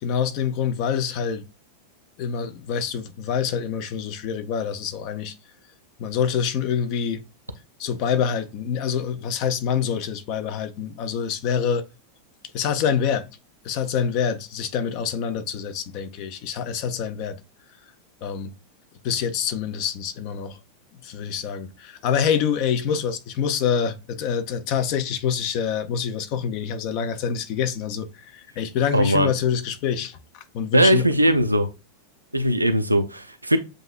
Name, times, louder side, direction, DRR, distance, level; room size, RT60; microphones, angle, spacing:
voice 1, 0.0-1.4 2.2-5.3 6.0-7.2 7.8-11.8 12.5-13.3 13.6-17.4 18.2-18.5 19.0-20.6 21.0-30.2 30.5-31.0, left 7 dB, 45° left, 0.6 m, -26 dB
voice 2, 28.9-29.3 30.7-31.7 32.3-33.6, right 1 dB, 85° right, 0.5 m, -19 dB
7.6 x 2.7 x 2.3 m
figure-of-eight pair, 90°, 0 cm